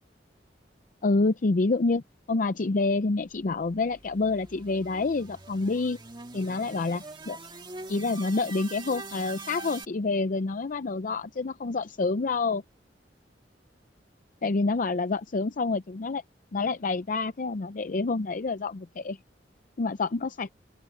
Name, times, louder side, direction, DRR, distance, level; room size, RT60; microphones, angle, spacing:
voice 1, 1.0-2.0 2.3-6.0 6.3-7.4 7.9-12.6 14.4-16.2 16.5-19.2 19.8-20.5, left 3 dB, 50° left, 0.5 m, -27 dB
sound 1, 3.5-9.9, right 3 dB, 25° right, 1.8 m, -44 dB
open air
head